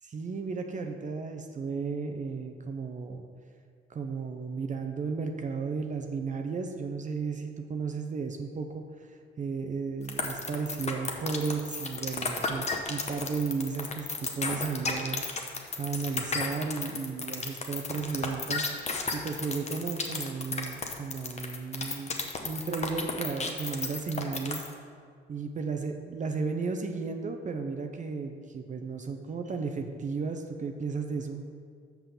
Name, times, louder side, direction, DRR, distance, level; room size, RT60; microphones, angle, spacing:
voice 1, 0.1-3.2 3.9-15.2 15.8-22.1 22.4-24.7 25.3-31.4, right 5 dB, 40° right, 5 dB, 0.7 m, -34 dB
sound 1, 10.1-24.7, left 4 dB, 35° left, 1.0 m, -33 dB
5.8 x 5.8 x 6.8 m, 2.1 s
cardioid pair, 90°, 20 cm